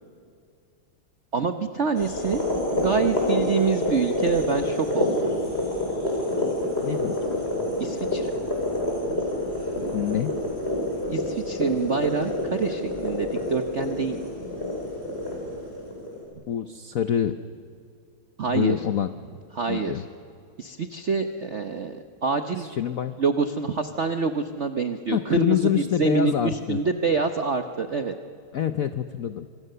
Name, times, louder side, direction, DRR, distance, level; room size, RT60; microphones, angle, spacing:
voice 1, 1.3-2.4 2.7-5.3 7.8-8.3 11.1-14.2 18.4-18.8 19.5-19.9 20.6-22.7 23.2-25.6 26.0-28.1, right 5 dB, 50° right, 8 dB, 0.8 m, -26 dB
sound 1, 1.9-16.2, left 1 dB, 25° left, 5.9 m, -27 dB
voice 2, 6.8-7.2 9.9-10.3 16.5-17.4 18.5-19.2 19.7-20.0 22.6-23.2 25.1-26.8 28.5-29.5, left 9 dB, 75° left, 11 dB, 0.7 m, -26 dB
25.5 x 25.0 x 6.8 m, 2.4 s
omnidirectional pair, 2.4 m